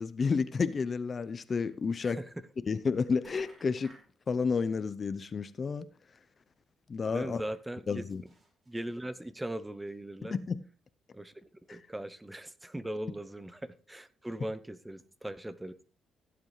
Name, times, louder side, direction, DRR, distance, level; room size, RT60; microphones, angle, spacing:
voice 1, 0.0-2.2 2.7-3.9 4.3-5.9 6.9-7.4 7.9-8.2 10.2-10.6 11.7-11.8, left 5 dB, 40° left, 0.7 m, -31 dB
sound 1, 1.3-1.4 1.6-1.7 2.8-2.9 3.2-4.1 5.7-5.8 6.1-6.2 6.5-6.6 7.5-9.0 9.5-9.6 9.9-10.0, right 2 dB, 30° right, 5.4 m, -58 dB
voice 2, 7.1-8.0 8.7-10.4 11.1-15.7, right 1 dB, 10° right, 0.8 m, -39 dB
16.0 x 8.1 x 3.3 m
cardioid pair, 90°, 0 cm